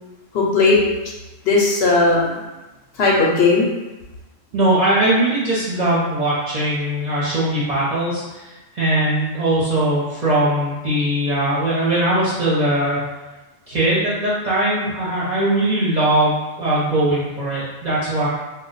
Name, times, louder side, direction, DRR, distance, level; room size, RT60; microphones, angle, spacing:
voice 1, 0.3-0.8 1.5-2.4 3.0-3.7, left 3 dB, 65° left, -3 dB, 0.8 m, -16 dB
voice 2, 4.5-8.5 8.8-13.0 13.7-18.3, right 1 dB, 45° right, -8 dB, 0.6 m, -20 dB
2.1 x 2.1 x 3.8 m, 1.1 s
omnidirectional pair, 1.3 m